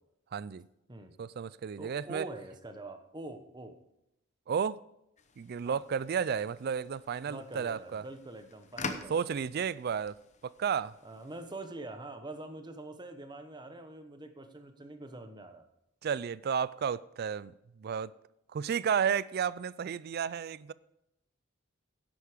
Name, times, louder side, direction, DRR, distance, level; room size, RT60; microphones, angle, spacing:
voice 1, 0.3-0.6 1.2-2.3 4.5-4.8 5.4-8.0 9.1-11.0 16.0-18.1 18.5-20.7, right 7 dB, 50° right, 0.3 m, -32 dB
voice 2, 1.8-3.8 5.6-5.8 7.3-9.3 11.0-15.6, right 2 dB, 20° right, 1.0 m, -44 dB
sound 1, 5.2-11.7, left 4 dB, 35° left, 0.8 m, -46 dB
10.5 x 8.2 x 5.0 m
head